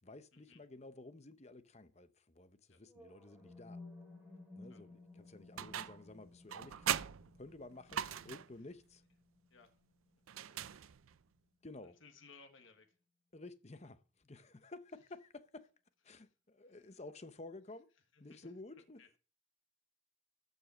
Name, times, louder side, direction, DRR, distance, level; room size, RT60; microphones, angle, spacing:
voice 1, 0.0-3.8 4.6-7.1 7.4-9.0 10.5-10.9 11.6-12.0 13.3-15.7 16.0-17.9 18.2-19.0, left 2 dB, 35° left, 0.8 m, -53 dB
sound 1, 2.8-10.9, left 2 dB, 10° right, 3.4 m, -57 dB
sound 2, 5.6-6.1 6.5-8.6 10.3-11.2, right 10 dB, 90° right, 0.5 m, -40 dB
voice 2, 8.0-8.3 9.5-9.7 10.4-10.7 11.8-13.0 16.1-16.3 16.6-17.0 18.1-19.2, left 4 dB, 70° left, 1.6 m, -63 dB
14.0 x 5.4 x 6.2 m
head